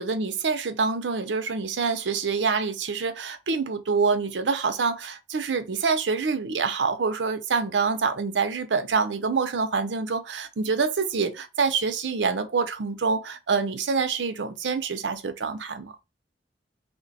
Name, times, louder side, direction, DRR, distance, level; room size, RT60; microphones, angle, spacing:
voice 1, 0.0-15.9, right 5 dB, 85° right, 0.6 m, -26 dB
3.2 x 2.2 x 4.0 m
head